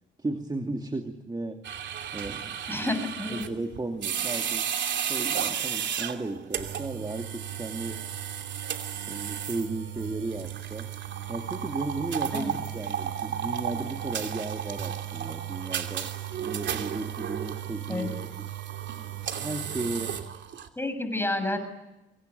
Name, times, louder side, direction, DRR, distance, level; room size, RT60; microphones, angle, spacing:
voice 1, 0.2-1.6 2.1-2.9 3.3-4.8 5.1-8.1 9.1-10.9 11.3-16.1 16.4-18.1 18.4-18.5 19.4-20.2, right 2 dB, 20° right, 6 dB, 2.5 m, -35 dB
sound 1, 1.6-20.7, right 9 dB, 65° right, 2.9 m, -33 dB
voice 2, 2.7-3.4 12.3-12.5 17.9-18.1 20.8-21.6, left 2 dB, 10° left, 8 dB, 6.8 m, -29 dB
26.0 x 24.5 x 9.4 m, 0.93 s
cardioid pair, 90°, 20 cm